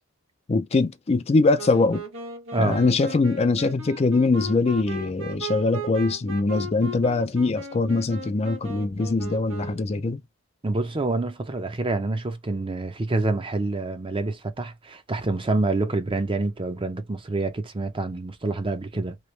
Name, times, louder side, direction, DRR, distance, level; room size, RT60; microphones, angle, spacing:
voice 1, 0.5-2.0 2.6-10.2, left 3 dB, 30° left, 0.4 m, -22 dB
Wind instrument woodwind instrument, 1.6-10.0, right 2 dB, 85° right, 1.4 m, -37 dB
voice 2, 10.6-19.2, right 2 dB, 25° right, 0.6 m, -27 dB
3.1 x 3.0 x 3.1 m
head